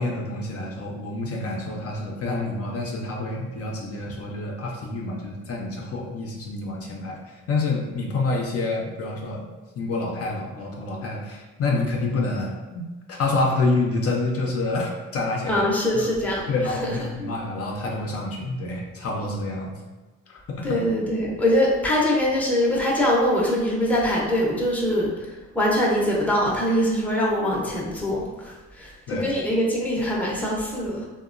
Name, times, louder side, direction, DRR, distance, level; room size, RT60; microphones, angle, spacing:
voice 1, 0.0-7.2 7.5-9.5 9.8-12.8 13.1-15.6 16.5-19.7 20.3-20.8 29.1-29.3, left 2 dB, 50° left, -1 dB, 0.5 m, -27 dB
voice 2, 15.5-17.3 20.6-31.0, left 1 dB, 5° left, -5 dB, 0.6 m, -23 dB
2.8 x 2.2 x 2.4 m, 1.2 s
cardioid pair, 90°, 30 cm